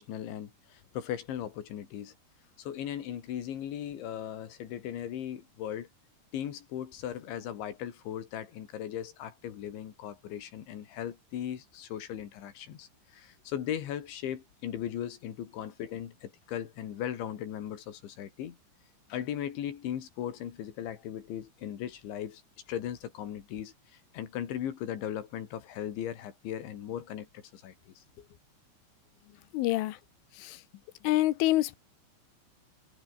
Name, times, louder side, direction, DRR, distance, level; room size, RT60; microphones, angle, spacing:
voice 1, 0.0-2.1 2.6-5.9 6.3-18.6 19.1-22.4 22.7-28.3, left 10 dB, 70° left, 4.8 m, -38 dB
voice 2, 29.5-30.0 30.4-30.6 31.0-31.8, left 16 dB, 90° left, 3.7 m, -26 dB
omnidirectional pair, 5.5 m